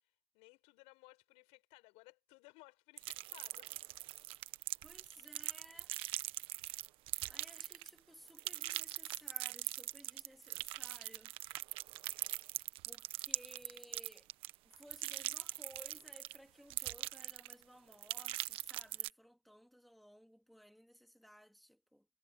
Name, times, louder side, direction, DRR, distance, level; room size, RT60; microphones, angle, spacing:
voice 1, 0.3-3.7, left 25 dB, 45° left, 6.7 m, -60 dB
sound 1, 3.0-8.0 8.3-16.4 16.7-17.6 17.9-19.1, right 17 dB, 40° right, 1.3 m, -41 dB
voice 2, 4.8-5.9 7.3-11.3 12.8-14.3 14.6-22.1, equal, ahead, 3.2 m, -59 dB
hypercardioid pair, 135°, 15 cm